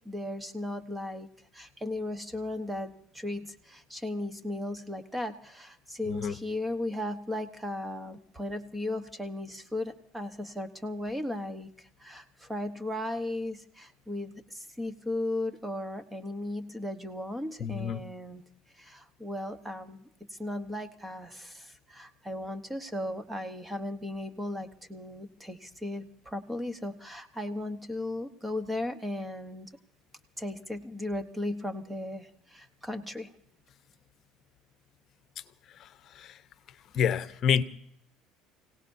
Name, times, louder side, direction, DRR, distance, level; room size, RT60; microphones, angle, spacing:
voice 1, 0.0-1.3 1.5-18.4 18.7-29.7 30.4-33.3, left 1 dB, 10° right, 1.1 m, -36 dB
voice 2, 6.0-6.4 17.6-18.0 35.7-36.4 36.7-37.6, left 8 dB, 45° left, 0.9 m, -29 dB
29.5 x 17.5 x 2.7 m
cardioid pair, 130°, 0 cm